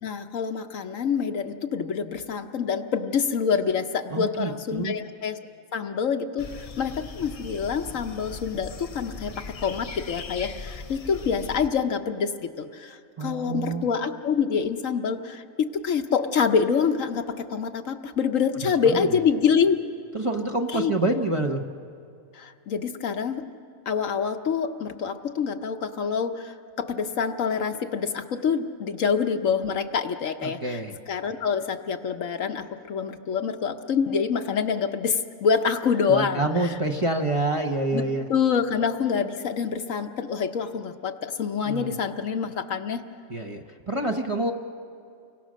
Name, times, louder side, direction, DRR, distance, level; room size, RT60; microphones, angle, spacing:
voice 1, 0.0-5.4 5.7-19.8 20.7-20.9 22.4-23.4 23.9-30.8 31.1-36.8 37.9-38.0 38.3-43.0, left 6 dB, 65° left, 6 dB, 1.3 m, -26 dB
voice 2, 4.1-5.0 13.2-13.9 18.8-19.1 20.1-21.6 30.4-31.0 36.1-38.3 41.6-42.0 43.3-44.5, right 2 dB, 25° right, 2 dB, 1.0 m, -27 dB
sound 1, 6.4-11.7, left 4 dB, 40° left, 0.5 m, -39 dB
29.5 x 23.5 x 6.4 m, 2.3 s
omnidirectional pair, 1.5 m